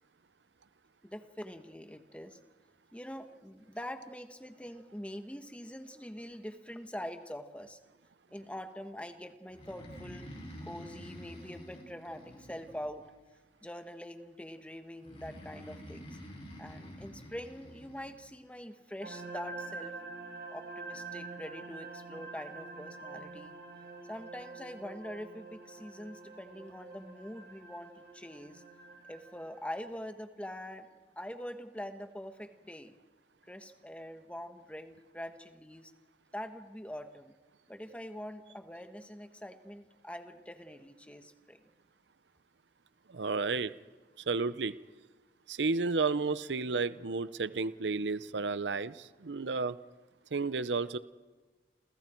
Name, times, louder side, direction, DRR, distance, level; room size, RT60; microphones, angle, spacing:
voice 1, 1.0-2.4 2.9-7.8 8.3-10.3 10.7-13.1 13.6-16.2 16.6-20.0 20.5-23.5 24.1-28.6 29.1-30.9 31.2-32.9 33.4-35.9 36.3-37.3 37.7-41.6, equal, 5° left, 7 dB, 1.4 m, -44 dB
Breathing, 9.5-13.2 15.0-18.1, equal, 35° left, 6.4 m, -48 dB
sound 1, 19.0-29.8, right 3 dB, 65° right, 4.4 m, -46 dB
voice 2, 43.1-43.7 44.3-44.7 45.5-49.8 50.3-51.0, right 4 dB, 85° right, 15 dB, 0.7 m, -32 dB
29.0 x 28.0 x 4.6 m, 1.3 s
head